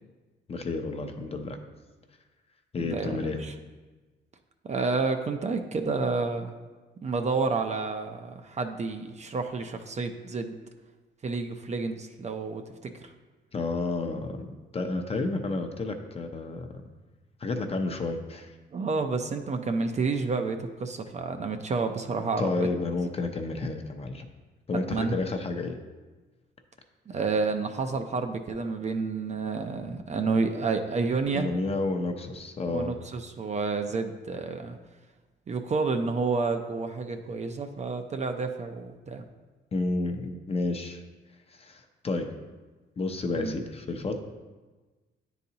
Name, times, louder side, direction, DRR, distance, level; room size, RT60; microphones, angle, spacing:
voice 1, 0.5-1.6 2.7-3.4 13.5-14.5 14.7-16.8 17.4-18.5 22.2-24.3 24.7-25.8 31.3-32.9 39.7-41.0 41.5-42.3 43.0-44.2, left 3 dB, 30° left, 5 dB, 0.6 m, -31 dB
voice 2, 2.8-3.5 4.7-6.5 7.0-10.6 11.2-13.1 18.7-22.5 24.9-25.2 27.1-31.5 32.7-34.7 35.5-39.2 43.3-43.5, right 4 dB, 35° right, 6 dB, 0.5 m, -30 dB
9.6 x 4.0 x 2.8 m, 1.3 s
cardioid pair, 95°, 19 cm